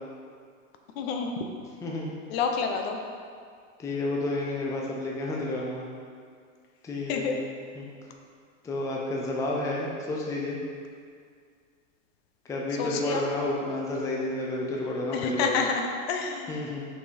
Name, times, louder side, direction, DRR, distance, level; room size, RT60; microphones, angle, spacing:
voice 1, 1.0-1.5 2.3-3.0 7.1-7.4 12.8-13.2 15.1-16.6, left 5 dB, 55° left, 4 dB, 0.8 m, -29 dB
voice 2, 1.8-2.1 3.8-5.9 6.8-7.4 7.8-7.9 8.6-10.6 12.4-15.6 16.5-16.9, left 2 dB, 10° left, -3 dB, 0.5 m, -30 dB
5.9 x 4.8 x 4.1 m, 2.1 s
supercardioid pair, 135°, 39 cm